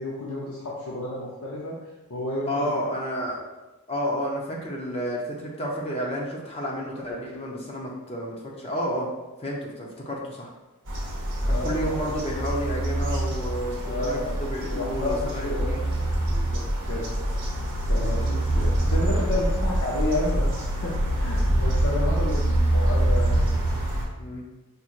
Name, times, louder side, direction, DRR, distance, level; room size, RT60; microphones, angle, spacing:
voice 1, 0.0-1.7 2.1-2.8 11.5-12.0 13.8-14.3 14.6-15.7 16.3-17.3 17.9-23.5, left 1 dB, 70° left, -5 dB, 0.7 m, -31 dB
voice 2, 2.5-3.4 3.9-9.1 9.4-10.5 11.4-15.8 24.2-24.5, equal, 25° left, -2 dB, 0.7 m, -31 dB
sound 1, 10.9-24.0, right 1 dB, 60° right, 0.9 m, -25 dB
5.1 x 2.9 x 2.5 m, 1.1 s
head